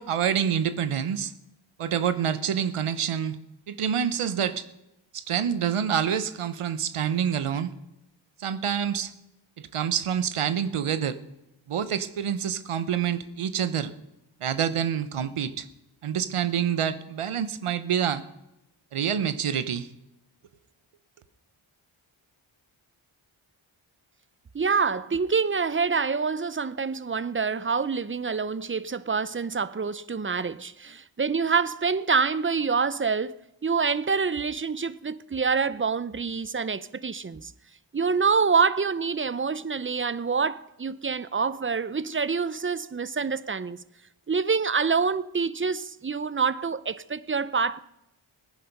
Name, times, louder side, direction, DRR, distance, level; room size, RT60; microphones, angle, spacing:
voice 1, 0.0-1.3 1.8-3.4 3.7-4.7 5.1-7.7 8.4-9.1 9.6-11.2 11.7-13.9 14.4-15.7 16.0-18.2 18.9-19.9, right 8 dB, 85° right, 1.0 m, -27 dB
voice 2, 24.5-37.5 37.9-43.8 44.3-47.8, right 5 dB, 25° right, 0.6 m, -26 dB
18.0 x 10.5 x 5.4 m
cardioid pair, 55°, 50 cm